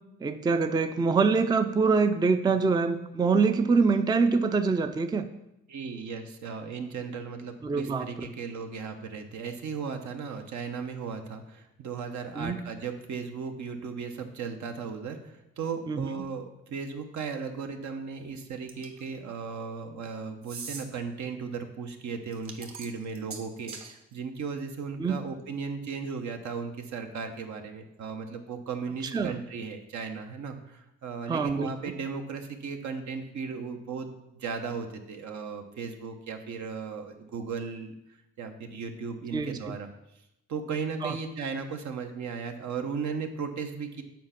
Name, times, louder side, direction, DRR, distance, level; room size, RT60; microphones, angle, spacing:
voice 1, 0.2-5.3 7.6-8.1 12.4-12.6 15.9-16.1 25.0-25.2 29.1-29.3 31.3-31.7 39.3-39.7 41.0-41.1, right 4 dB, 15° right, 9 dB, 0.4 m, -25 dB
voice 2, 5.7-34.1 34.3-38.0 38.4-39.9 40.5-44.0, right 5 dB, 70° right, 5 dB, 1.0 m, -36 dB
sound 1, 18.7-19.1 20.4-20.9 22.3-23.9, right 4 dB, 45° right, 1.2 m, -41 dB
7.6 x 4.5 x 5.8 m, 0.86 s
cardioid pair, 90°, 30 cm